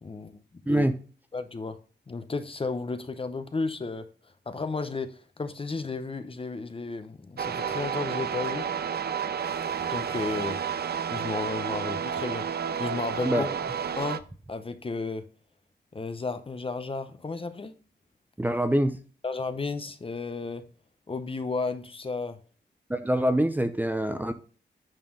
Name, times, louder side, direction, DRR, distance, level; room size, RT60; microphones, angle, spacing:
voice 1, 0.0-0.4 0.7-0.9 1.3-1.8 2.1-4.1 4.5-8.7 9.9-10.6 11.1-13.5 14.0-15.2 15.9-17.7 19.2-20.6 21.1-22.4, left 3 dB, 30° left, 0.6 m, -33 dB
sound 1, 7.4-14.2, right 7 dB, 60° right, 0.5 m, -31 dB
voice 2, 18.4-19.0 22.9-24.3, right 1 dB, 10° right, 0.5 m, -25 dB
8.9 x 4.3 x 3.7 m
wide cardioid pair, 145°, 19 cm